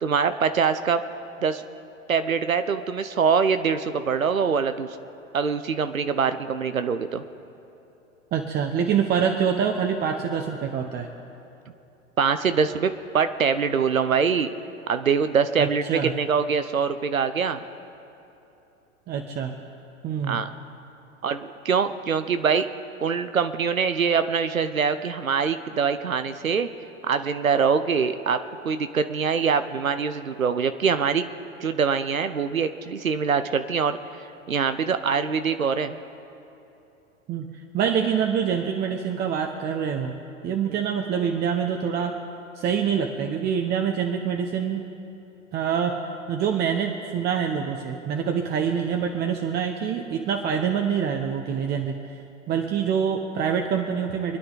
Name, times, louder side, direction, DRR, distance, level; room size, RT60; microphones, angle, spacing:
voice 1, 0.0-1.0 1.4-1.6 2.1-4.9 5.3-7.2 12.2-14.5 14.9-17.6 20.3-20.5 21.2-22.7 23.0-26.7 27.0-31.3 31.6-36.0 40.6-40.8, right 6 dB, 85° right, 10 dB, 0.9 m, -24 dB
voice 2, 8.3-11.1 15.6-16.1 19.1-19.5 20.0-20.4 37.3-37.5 37.7-40.1 40.4-42.1 42.6-44.8 45.5-46.0 46.3-51.9 52.5-54.4, right 7 dB, 25° right, 3 dB, 1.1 m, -25 dB
27.5 x 10.0 x 4.0 m, 2.9 s
figure-of-eight pair, 100°, 40 cm